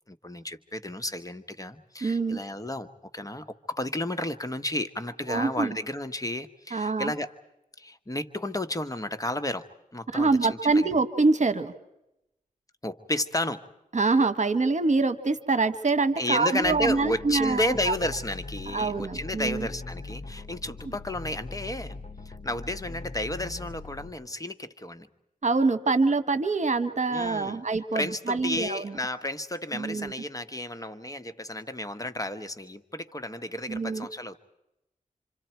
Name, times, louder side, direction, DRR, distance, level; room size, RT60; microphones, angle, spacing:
voice 1, 0.1-2.9 3.1-7.3 7.8-9.7 9.9-10.9 12.8-13.7 16.2-22.0 22.2-25.1 27.1-27.6 27.9-34.4, left 1 dB, 25° left, 10 dB, 1.3 m, -32 dB
voice 2, 2.0-2.4 5.3-5.7 6.7-7.1 10.1-11.7 13.9-17.9 18.7-19.7 25.4-28.9 29.7-30.1 33.7-34.1, right 3 dB, 55° right, 12 dB, 1.4 m, -25 dB
sound 1, 16.6-24.1, left 3 dB, 50° left, 1.2 m, -41 dB
27.0 x 27.0 x 4.6 m, 0.87 s
cardioid pair, 55°, 15 cm